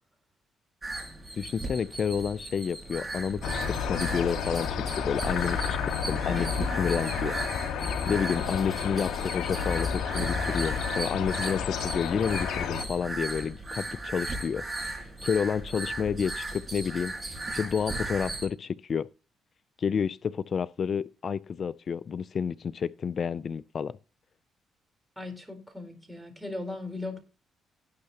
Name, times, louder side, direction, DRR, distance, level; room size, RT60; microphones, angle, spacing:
sound 1, 0.8-18.5, right 2 dB, 25° right, 5.1 m, -37 dB
voice 1, 1.4-7.3 8.1-19.1 19.8-23.9, left 6 dB, 50° left, 0.4 m, -30 dB
sound 2, 3.4-12.9, left 7 dB, 80° left, 1.6 m, -31 dB
voice 2, 6.3-6.8 25.2-27.2, left 2 dB, 10° right, 4.0 m, -38 dB
18.0 x 6.6 x 2.9 m
cardioid pair, 90°, 0 cm